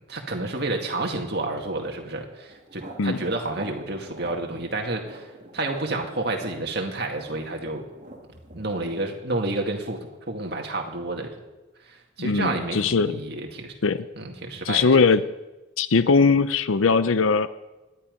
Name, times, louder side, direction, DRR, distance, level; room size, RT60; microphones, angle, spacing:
voice 1, 0.1-5.3 5.5-7.9 8.5-10.0 10.3-11.3 11.8-13.7 14.1-15.0, right 2 dB, 55° right, 2 dB, 2.1 m, -30 dB
sound 1, 2.5-9.1, right 1 dB, 35° right, 1.8 m, -45 dB
voice 2, 12.2-13.2 13.8-14.1 14.7-15.3 15.8-17.5, left 4 dB, 85° left, 13 dB, 0.6 m, -20 dB
19.0 x 11.5 x 5.2 m, 1.1 s
head